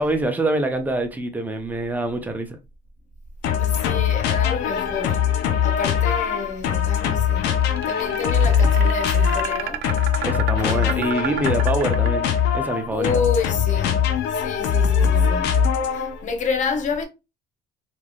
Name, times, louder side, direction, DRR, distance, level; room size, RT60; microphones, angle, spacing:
voice 1, 0.0-2.6 10.2-12.3 12.5-13.1, right 2 dB, 10° right, 0.6 m, -25 dB
sound 1, 3.4-16.2, left 7 dB, 90° left, 0.6 m, -21 dB
voice 2, 3.6-5.2 5.6-7.5 7.9-9.8 10.6-10.9 12.9-14.0 14.3-15.5 15.9-17.1, left 5 dB, 45° left, 0.7 m, -28 dB
sound 2, 7.6-12.7, right 11 dB, 80° right, 0.4 m, -32 dB
3.2 x 2.6 x 2.4 m
cardioid pair, 110°, 17 cm